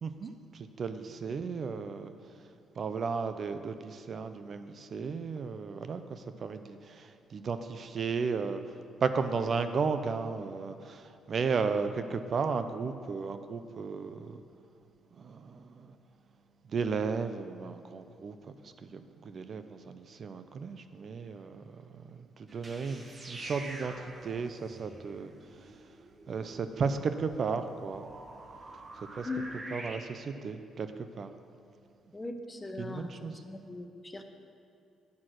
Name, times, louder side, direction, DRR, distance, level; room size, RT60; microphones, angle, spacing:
voice 1, 0.0-14.4 15.2-16.0 16.7-25.8 26.3-28.1 28.9-29.3 29.7-30.9 31.2-31.3 32.8-33.4, right 5 dB, 50° right, 10 dB, 0.5 m, -35 dB
sound 1, 22.5-30.0, right 2 dB, 30° right, 1.0 m, -47 dB
voice 2, 32.1-33.1 33.5-34.3, left 3 dB, 20° left, 6 dB, 0.8 m, -39 dB
9.6 x 5.9 x 6.4 m, 2.5 s
cardioid pair, 90°, 0 cm